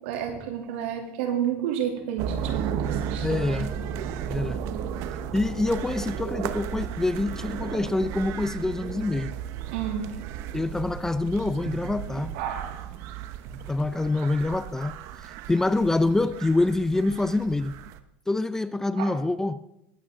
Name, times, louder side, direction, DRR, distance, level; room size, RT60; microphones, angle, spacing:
voice 1, 0.0-3.7 9.7-10.1 12.3-12.9 19.0-19.2, right 9 dB, 75° right, 2.9 m, -31 dB
sound 1, 2.2-18.0, right 9 dB, 55° right, 0.9 m, -34 dB
voice 2, 3.2-3.7 4.3-4.6 5.3-9.3 10.5-12.3 13.7-15.0 15.2-17.7 18.3-19.6, left 2 dB, 10° left, 0.5 m, -26 dB
21.5 x 8.8 x 3.7 m
supercardioid pair, 130°, 6 cm